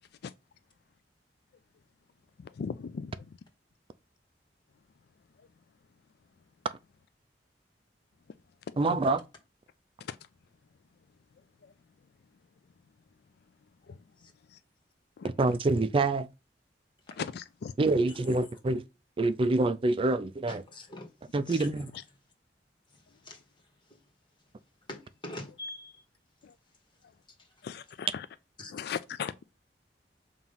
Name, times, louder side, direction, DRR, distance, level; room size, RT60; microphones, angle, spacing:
voice 1, 2.4-3.3 8.7-9.0 10.0-10.2 11.6-11.7 13.9-14.0 14.5-14.6 15.2-15.3 17.2-17.7 21.9-22.0 26.4-26.5 27.0-27.1 27.6-28.3 28.7-29.4, left 6 dB, 65° left, 0.4 m, -38 dB
voice 2, 8.8-9.2 15.2-16.3 17.8-18.8 19.2-20.6 21.3-21.9, right 2 dB, 30° right, 0.4 m, -26 dB
voice 3, 20.5-21.8 22.9-24.1 24.9-26.0 26.9-27.7 28.6-28.7, left 2 dB, 25° left, 1.9 m, -46 dB
7.2 x 3.0 x 5.5 m
head